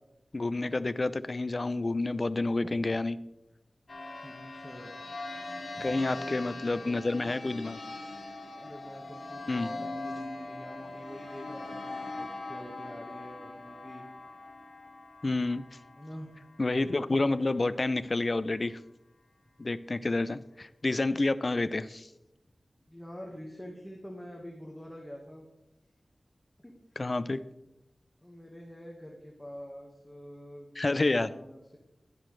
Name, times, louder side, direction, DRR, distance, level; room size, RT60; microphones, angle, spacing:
voice 1, 0.3-3.2 5.8-7.8 9.5-9.7 15.2-15.7 16.6-18.8 19.6-22.1 27.0-27.4 30.8-31.3, left 2 dB, 40° left, 15 dB, 0.4 m, -29 dB
sound 1, 3.9-17.1, left 2 dB, 65° left, 2.3 m, -42 dB
voice 2, 4.2-4.9 5.8-7.0 8.5-14.0 15.9-16.3 22.9-25.4 26.6-26.7 28.2-31.8, equal, 5° left, -1 dB, 1.5 m, -46 dB
12.0 x 10.5 x 3.2 m, 0.93 s
wide cardioid pair, 85°, 0 cm